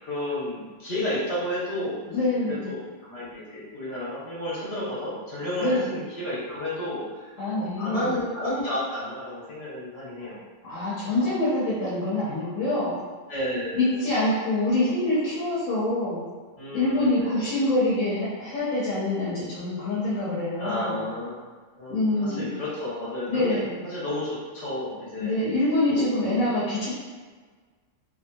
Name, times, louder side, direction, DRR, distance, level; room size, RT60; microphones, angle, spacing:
voice 1, 0.0-2.0 2.5-7.3 7.6-10.4 11.0-11.3 13.3-14.1 16.6-17.6 20.6-21.4 21.8-23.6 23.8-25.4 25.9-26.1, left 1 dB, 55° left, -8 dB, 1.3 m, -32 dB
voice 2, 2.1-2.7 5.6-5.9 7.4-8.1 10.6-12.9 13.8-16.2 16.7-21.0 21.9-22.5 23.3-23.7 25.2-26.9, left 2 dB, 75° left, -9 dB, 1.3 m, -25 dB
3.1 x 2.7 x 2.2 m, 1.4 s
omnidirectional pair, 1.3 m